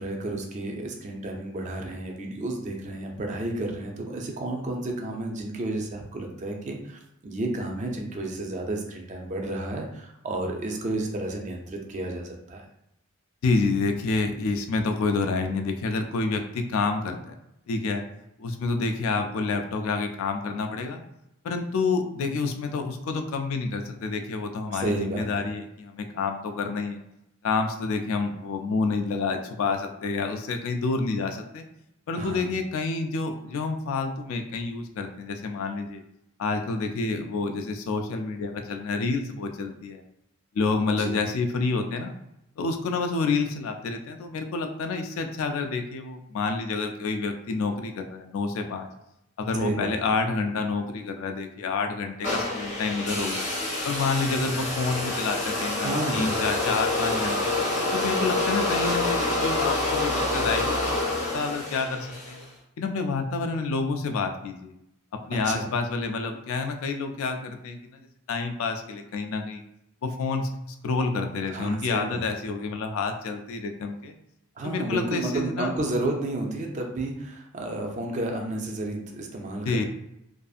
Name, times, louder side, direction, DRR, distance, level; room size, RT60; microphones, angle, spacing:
voice 1, 0.0-12.6 24.7-25.4 32.2-32.5 41.0-41.2 49.5-50.0 55.8-56.4 65.4-65.7 71.5-72.2 74.6-79.8, right 2 dB, 35° right, 2 dB, 0.4 m, -31 dB
voice 2, 13.4-17.3 17.7-18.0 18.4-21.0 21.4-27.0 27.4-31.6 32.1-36.0 36.4-40.0 40.5-42.1 42.6-48.9 49.4-53.5 53.8-57.5 57.9-61.0 61.3-62.4 62.8-64.7 65.3-68.0 68.3-69.6 70.0-74.1 74.6-75.7 79.7-79.8, left 4 dB, 70° left, 5 dB, 0.3 m, -28 dB
sound 1, 52.2-62.4, left 2 dB, 35° left, 0.7 m, -27 dB
2.5 x 2.4 x 2.4 m, 0.84 s
head